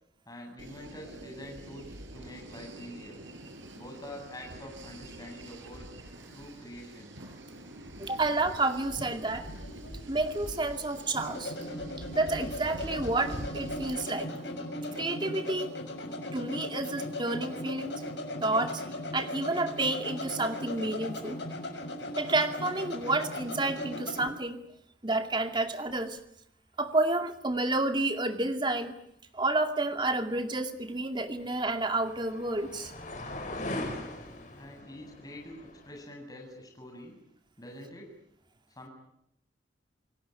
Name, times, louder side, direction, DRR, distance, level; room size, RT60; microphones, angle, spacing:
voice 1, 0.3-3.2 3.7-5.9 6.3-7.2 34.5-35.6 35.8-37.2 37.6-38.1 38.7-38.9, left 1 dB, 20° left, 1 dB, 7.7 m, -46 dB
sound 1, 0.6-14.0, right 1 dB, 85° right, 5.9 m, -45 dB
voice 2, 8.0-9.5 10.1-11.5 12.1-14.3 14.9-15.8 16.3-18.0 18.4-18.8 19.1-21.4 22.2-24.6 25.0-26.2 26.8-28.9 29.3-32.9, right 2 dB, 25° right, 6 dB, 2.3 m, -30 dB
sound 2, 9.0-24.3, left 1 dB, 75° left, 6.4 m, -38 dB
sound 3, 30.7-36.0, left 1 dB, 40° left, 5.4 m, -41 dB
28.5 x 18.5 x 9.8 m, 0.76 s
head